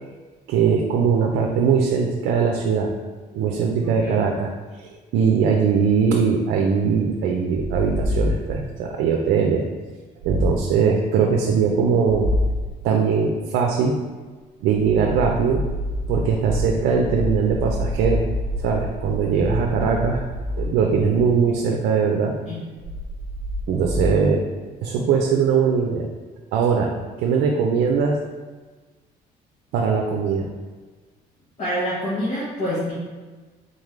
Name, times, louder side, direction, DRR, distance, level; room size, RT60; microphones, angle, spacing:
voice 1, 0.5-2.9 3.3-4.5 4.8-9.7 10.2-12.3 12.8-14.0 14.6-15.6 16.1-18.3 18.6-20.2 20.6-22.3 23.7-24.4 24.8-26.1 26.5-28.2 29.7-30.5, right 6 dB, 80° right, 1 dB, 0.5 m, -20 dB
voice 2, 3.8-4.2 22.5-22.6 31.6-32.9, equal, 40° left, -9 dB, 1.3 m, -26 dB
sound 1, 7.5-8.8 10.2-10.8 12.1-12.8 14.7-21.4 22.8-24.1, left 1 dB, 60° right, 0.9 m, -27 dB
3.9 x 3.6 x 3.1 m, 1.4 s
cardioid pair, 110°, 17 cm